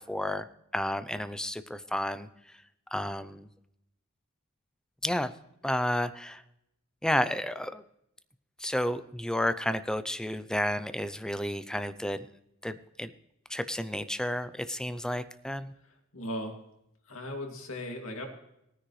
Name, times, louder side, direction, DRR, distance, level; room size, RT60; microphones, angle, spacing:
voice 1, 0.1-0.5 0.7-2.3 2.9-3.5 5.0-5.3 5.6-6.4 7.0-7.8 8.6-12.2 12.6-13.1 13.5-15.7, left 1 dB, 5° left, 12 dB, 0.5 m, -31 dB
voice 2, 15.8-16.5 17.1-18.3, left 1 dB, 80° left, 2 dB, 2.4 m, -37 dB
18.0 x 10.0 x 3.2 m, 0.81 s
head